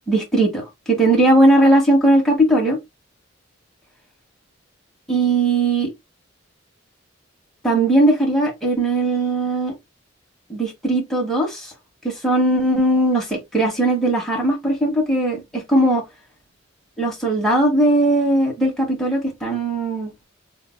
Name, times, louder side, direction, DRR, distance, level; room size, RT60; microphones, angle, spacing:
voice 1, 0.1-2.8 5.1-5.9 7.6-9.7 10.5-11.7 12.0-16.0 17.0-20.1, right 1 dB, ahead, 1.2 m, -18 dB
4.0 x 2.8 x 2.2 m
head